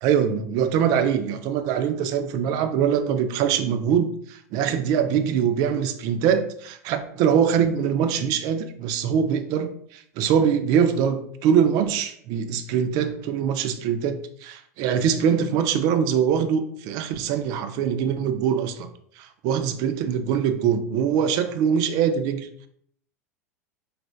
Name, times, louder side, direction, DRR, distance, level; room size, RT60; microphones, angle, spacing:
voice 1, 0.0-18.9 19.2-22.7, right 8 dB, 45° right, 8 dB, 0.4 m, -23 dB
4.8 x 2.4 x 2.4 m, 0.65 s
figure-of-eight pair, 85°, 9 cm